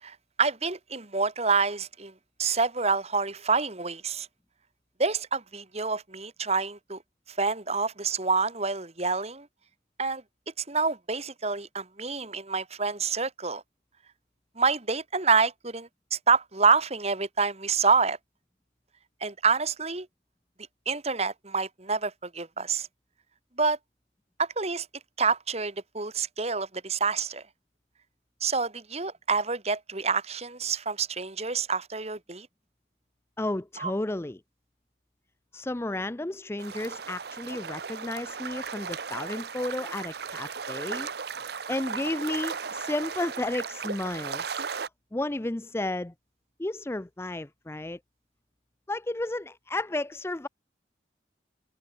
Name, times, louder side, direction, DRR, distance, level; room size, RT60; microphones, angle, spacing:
voice 1, 0.0-2.1 2.4-4.3 5.0-7.0 7.3-9.5 10.0-10.2 10.7-13.6 14.6-18.2 19.2-20.1 20.9-22.9 23.6-23.8 24.4-24.9 25.2-27.4 28.4-32.5 33.8-33.9, right 4 dB, 35° right, 2.2 m, -27 dB
voice 2, 33.4-34.4 35.5-41.1 41.7-44.6 45.1-46.1 46.6-48.0 48.9-50.5, left 2 dB, 15° left, 0.4 m, -32 dB
sound 1, 36.6-44.9, right 6 dB, 60° right, 0.7 m, -36 dB
head